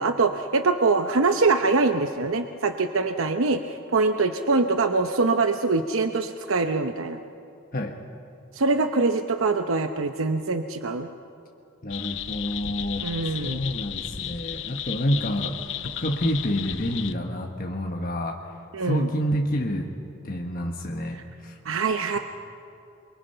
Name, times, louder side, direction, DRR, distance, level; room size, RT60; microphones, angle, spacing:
voice 1, 0.0-7.2 8.5-11.1 13.0-13.6 18.7-19.1 21.6-22.2, right 3 dB, 80° right, 7 dB, 0.8 m, -23 dB
voice 2, 11.8-19.9 20.2-21.6, equal, 45° left, 2 dB, 1.3 m, -28 dB
sound 1, 11.9-17.1, left 10 dB, 60° left, 0.8 m, -34 dB
28.0 x 23.5 x 5.7 m, 2.6 s
head